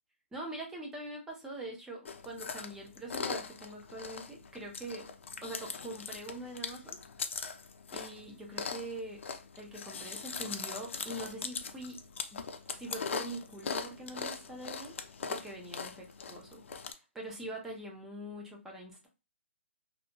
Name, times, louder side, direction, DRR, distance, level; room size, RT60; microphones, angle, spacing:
voice 1, 0.3-5.1 5.4-7.0 7.9-9.2 9.6-12.0 12.3-12.4 12.8-19.1, right 1 dB, 5° right, 0 dB, 0.4 m, -43 dB
Chewing mastication, 2.0-16.9, left 5 dB, 70° left, 0.4 m, -41 dB
2.7 x 2.1 x 2.7 m, 0.29 s
hypercardioid pair, 165°, 7 cm